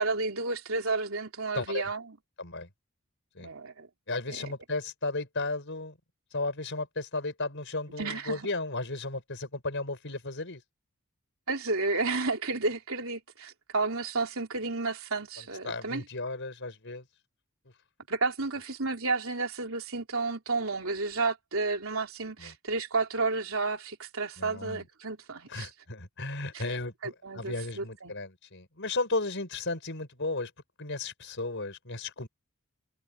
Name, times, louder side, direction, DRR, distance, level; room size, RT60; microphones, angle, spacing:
voice 1, 0.0-2.2 3.4-3.9 4.3-4.5 8.0-8.5 11.5-16.0 18.1-25.7 26.5-26.6 27.0-28.1, right 3 dB, 70° right, 3.9 m, -31 dB
voice 2, 1.5-1.9 2.4-2.7 3.3-3.5 4.1-6.0 6.3-10.6 15.4-17.0 22.4-22.5 24.4-24.8 25.5-30.5 30.8-32.3, left 2 dB, 55° left, 5.9 m, -34 dB
head